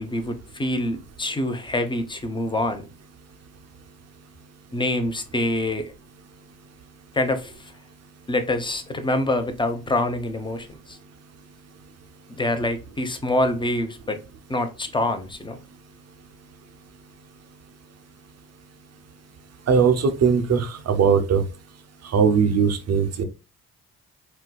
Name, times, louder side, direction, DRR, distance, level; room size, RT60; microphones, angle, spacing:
voice 1, 0.0-2.8 4.7-5.9 7.1-7.7 8.3-11.0 12.3-14.2 14.5-15.6, left 1 dB, 15° left, 0.7 m, -26 dB
voice 2, 19.7-21.4 22.0-23.2, right 6 dB, 45° right, 0.7 m, -20 dB
4.3 x 2.2 x 2.2 m
supercardioid pair, 55°, 36 cm